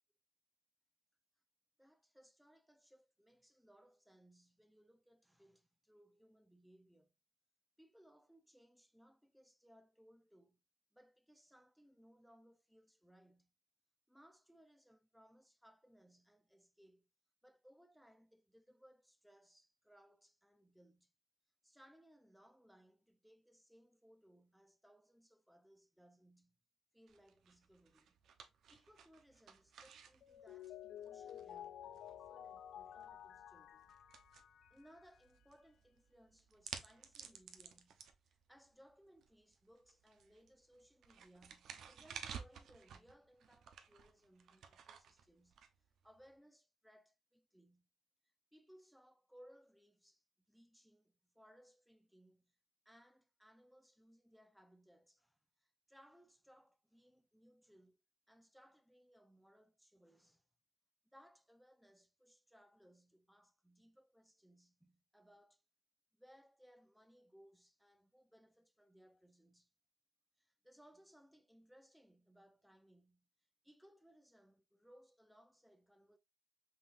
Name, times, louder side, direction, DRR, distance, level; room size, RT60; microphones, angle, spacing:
voice 1, 1.8-7.1 7.8-10.6 10.9-13.5 14.1-17.1 17.4-21.1 21.6-26.6 26.9-28.2 28.7-34.0 34.7-45.6 46.0-47.9 48.2-52.6 52.9-58.0 58.3-60.5 61.1-65.6 66.1-69.7 70.4-73.3 73.6-76.2, equal, ahead, 0.6 m, -66 dB
sound 1, 27.1-46.3, right 7 dB, 65° right, 0.7 m, -56 dB
Mallet percussion, 30.2-35.2, left 10 dB, 65° left, 0.3 m, -52 dB
5.3 x 3.8 x 2.5 m
cardioid pair, 110°, 0 cm